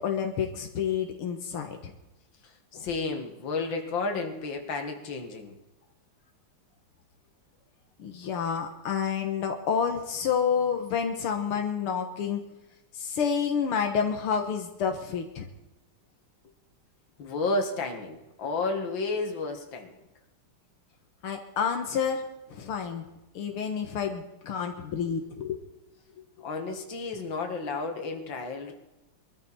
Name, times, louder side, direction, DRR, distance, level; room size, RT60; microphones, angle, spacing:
voice 1, 0.0-1.9 2.7-2.9 8.0-12.4 12.9-15.5 21.2-23.0 23.3-25.6, left 7 dB, 85° left, 4 dB, 2.3 m, -29 dB
voice 2, 2.4-5.6 11.6-11.7 17.2-20.0 26.4-28.7, left 3 dB, 60° left, 3 dB, 2.7 m, -32 dB
23.0 x 13.5 x 4.3 m, 0.96 s
omnidirectional pair, 2.4 m